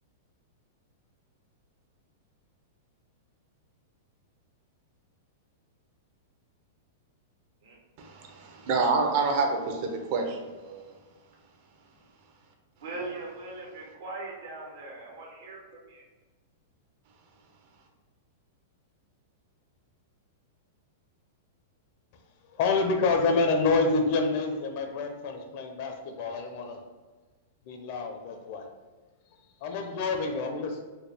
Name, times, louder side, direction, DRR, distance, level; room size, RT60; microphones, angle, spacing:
voice 1, 8.0-10.4 10.6-10.8, right 4 dB, 50° right, 3 dB, 0.7 m, -27 dB
voice 2, 12.8-16.0, right 2 dB, 75° right, -2 dB, 1.1 m, -40 dB
voice 3, 22.6-26.8 27.7-28.7 29.6-30.8, left 3 dB, 50° left, 4 dB, 0.6 m, -27 dB
4.3 x 2.2 x 3.3 m, 1.3 s
supercardioid pair, 145°, 0 cm